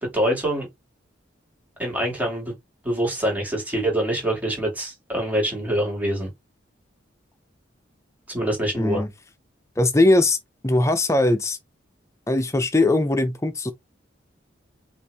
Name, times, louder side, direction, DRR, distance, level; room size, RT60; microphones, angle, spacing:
voice 1, 0.0-0.7 1.8-2.5 2.8-6.3 8.3-9.0, right 1 dB, 10° right, 2.3 m, -25 dB
voice 2, 8.8-9.1 9.8-10.4 10.6-11.6 12.3-13.7, left 2 dB, 15° left, 0.6 m, -20 dB
5.4 x 2.6 x 3.4 m
head